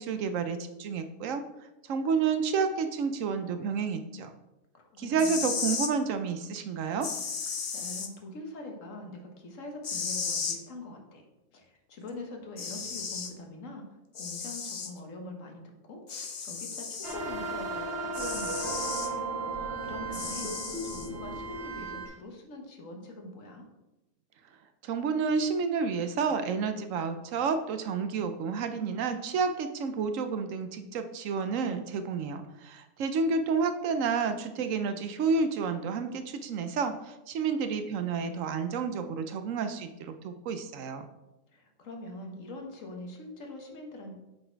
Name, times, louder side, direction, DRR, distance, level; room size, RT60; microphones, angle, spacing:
voice 1, 0.0-1.4 1.9-4.3 5.0-7.1 24.8-41.1, right 5 dB, 75° right, 9 dB, 1.0 m, -30 dB
voice 2, 4.7-5.5 7.7-11.2 11.5-13.9 14.1-19.3 19.8-20.5 20.8-23.7 41.5-44.2, left 2 dB, 70° left, 2 dB, 1.5 m, -43 dB
sound 1, 5.0-5.9 7.0-8.1 9.8-10.6 12.1-12.2 12.6-13.3 14.2-14.9 16.1-17.2 18.1-19.1 20.1-21.1, left 5 dB, 45° left, 0.5 m, -34 dB
sound 2, 17.0-22.1, right 3 dB, 45° right, 1.9 m, -35 dB
7.7 x 4.2 x 4.5 m, 0.99 s
omnidirectional pair, 1.4 m